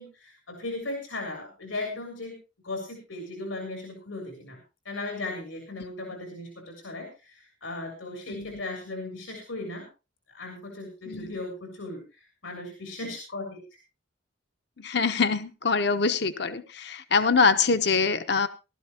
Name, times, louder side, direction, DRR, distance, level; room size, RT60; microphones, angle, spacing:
voice 1, 0.0-2.4 2.6-4.6 4.8-9.9 10.3-13.6, left 2 dB, 90° left, 3 dB, 3.4 m, -37 dB
voice 2, 8.3-8.6 11.1-11.4 14.8-18.5, left 5 dB, 55° left, 9 dB, 0.9 m, -24 dB
17.5 x 12.5 x 2.9 m, 0.29 s
head